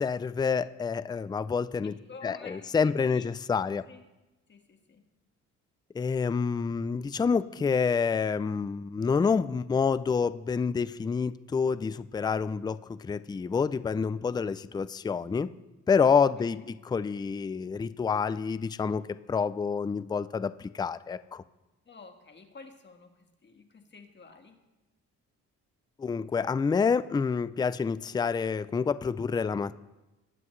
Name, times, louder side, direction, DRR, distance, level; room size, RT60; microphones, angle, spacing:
voice 1, 0.0-1.9 2.2-3.8 5.9-15.5 15.9-19.0 19.3-21.4 26.0-29.8, left 5 dB, 15° left, 15 dB, 0.4 m, -28 dB
voice 2, 1.8-4.0 4.5-5.0 16.4-16.6 21.8-24.6, left 4 dB, 35° left, 5 dB, 1.6 m, -50 dB
20.0 x 7.7 x 3.2 m, 1.1 s
cardioid pair, 90°, 30 cm